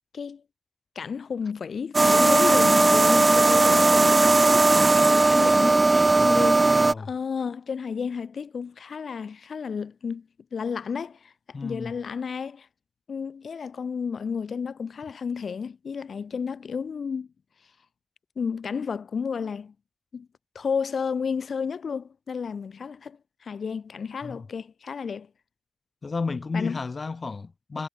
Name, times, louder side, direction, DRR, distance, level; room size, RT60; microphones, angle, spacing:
voice 1, 0.9-12.7 13.1-17.3 18.3-19.7 20.1-20.3 20.5-25.3 26.5-26.8, left 6 dB, 90° left, 6.8 m, -32 dB
sound 1, 1.9-6.9, right 2 dB, 30° right, 1.4 m, -18 dB
voice 2, 6.2-7.1 11.5-11.9 24.2-24.5 26.0-27.9, left 4 dB, 50° left, 6.2 m, -33 dB
wide cardioid pair, 110°, 0 cm